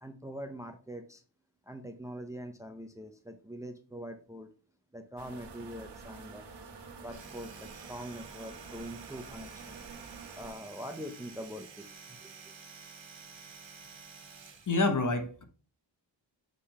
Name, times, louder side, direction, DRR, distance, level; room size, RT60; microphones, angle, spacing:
voice 1, 0.0-1.2 1.7-4.5 4.9-6.5 7.0-9.8 10.3-12.5, equal, 5° right, 0.6 m, -43 dB
sound 1, 5.2-10.5, right 4 dB, 65° right, 1.3 m, -48 dB
Domestic sounds home sounds, 7.0-14.8, right 5 dB, 85° right, 1.4 m, -51 dB
voice 2, 14.7-15.4, left 3 dB, 45° left, 1.1 m, -27 dB
6.6 x 3.7 x 4.2 m
wide cardioid pair, 135°, 44 cm